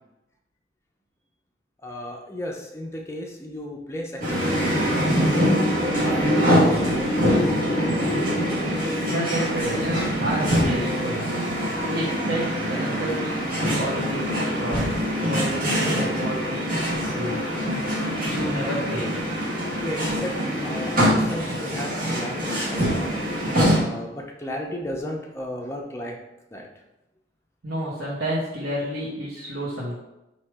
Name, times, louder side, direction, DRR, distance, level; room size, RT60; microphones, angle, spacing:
voice 1, 1.8-4.2 4.6-7.1 7.8-7.9 17.6-17.7 19.7-20.4 20.6-23.2 23.7-26.1 26.5-26.6, equal, 15° left, 0 dB, 0.6 m, -35 dB
sound 1, 4.2-23.8, equal, 50° right, 1.2 m, -24 dB
voice 2, 9.0-11.2 11.8-14.9 15.2-16.8 17.1-17.5 18.4-19.1 27.6-30.0, equal, 85° right, -8 dB, 1.1 m, -30 dB
3.2 x 2.8 x 4.6 m, 0.93 s
head